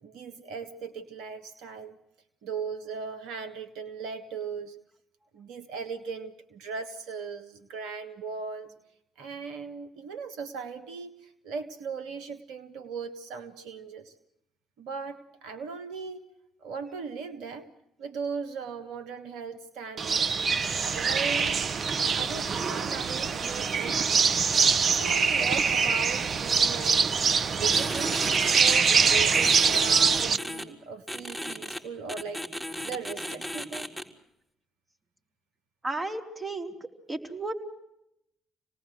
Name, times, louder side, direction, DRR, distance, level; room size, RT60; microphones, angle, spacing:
voice 1, 0.0-2.0 2.4-4.8 5.3-8.7 9.2-14.1 14.8-16.2 16.6-17.7 18.0-20.3 20.8-21.6 22.1-24.2 24.9-27.1 27.6-28.2 28.5-32.4 32.8-33.9, right 5 dB, 75° right, 10 dB, 1.5 m, -38 dB
sound 1, 20.0-30.4, right 5 dB, 50° right, 0.8 m, -24 dB
sound 2, 27.7-28.8 29.3-30.6 31.1-31.8 32.1-34.0, left 1 dB, 10° right, 3.6 m, -36 dB
voice 2, 35.8-36.7 37.1-37.5, right 2 dB, 25° right, 5 dB, 4.0 m, -33 dB
27.5 x 19.0 x 7.8 m, 0.82 s
hypercardioid pair, 50°, 0 cm